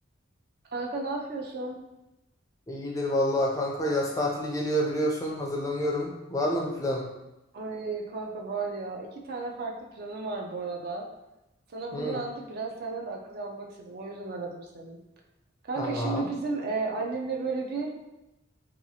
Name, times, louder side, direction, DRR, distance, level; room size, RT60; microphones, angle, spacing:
voice 1, 0.7-1.8 7.5-11.1 11.7-15.0 15.7-18.1, right 3 dB, 50° right, 0 dB, 0.4 m, -34 dB
voice 2, 2.7-7.1 11.9-12.2 15.8-16.3, equal, 15° left, -1 dB, 0.3 m, -28 dB
2.8 x 2.3 x 2.7 m, 0.94 s
head